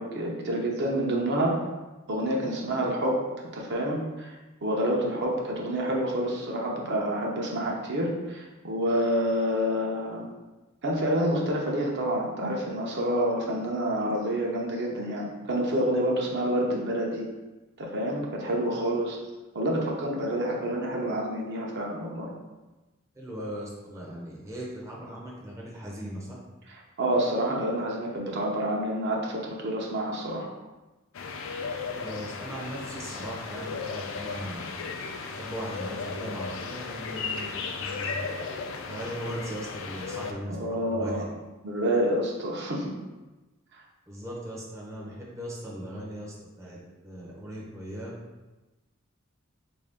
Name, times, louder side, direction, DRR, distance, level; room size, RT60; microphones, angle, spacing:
voice 1, 0.0-1.6 2.1-3.2 3.5-10.3 10.8-17.3 17.8-19.2 19.5-22.3 26.7-30.5 40.5-41.3 41.6-42.9 43.7-43.8, right 1 dB, 55° right, -1 dB, 0.6 m, -28 dB
voice 2, 23.2-26.4 31.9-34.7 35.3-38.3 38.8-41.2 44.1-48.1, equal, 15° right, -4 dB, 0.5 m, -38 dB
sound 1, 31.1-40.3, left 4 dB, 65° left, 0.4 m, -35 dB
3.6 x 2.6 x 3.4 m, 1.1 s
head